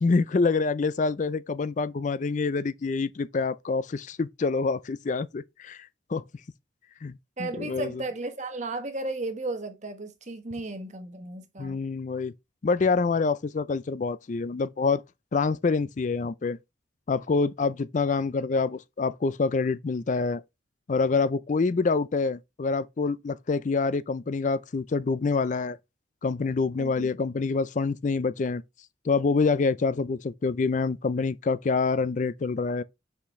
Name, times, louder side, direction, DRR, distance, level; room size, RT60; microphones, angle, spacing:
voice 1, 0.0-6.2 7.0-7.1 7.4-8.0 11.6-12.3 12.6-15.0 15.3-16.6 17.1-20.4 20.9-25.8 26.2-28.6 29.0-32.8, left 4 dB, 40° left, 0.4 m, -26 dB
voice 2, 7.4-11.8 26.8-27.1, right 2 dB, 40° right, 1.3 m, -34 dB
6.0 x 5.8 x 3.1 m
head